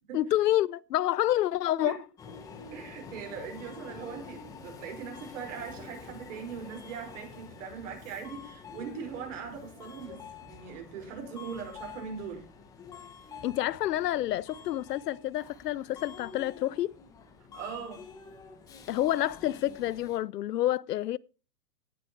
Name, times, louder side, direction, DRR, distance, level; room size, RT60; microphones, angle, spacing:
voice 1, 0.1-2.0 13.4-16.9 18.9-21.2, left 13 dB, 75° left, 0.6 m, -28 dB
Subway metro underground, 2.2-20.2, left 5 dB, 5° left, 0.8 m, -48 dB
voice 2, 2.7-12.5 17.5-18.0, right 6 dB, 50° right, 5.1 m, -40 dB
17.5 x 6.1 x 4.5 m
hypercardioid pair, 155°, 49 cm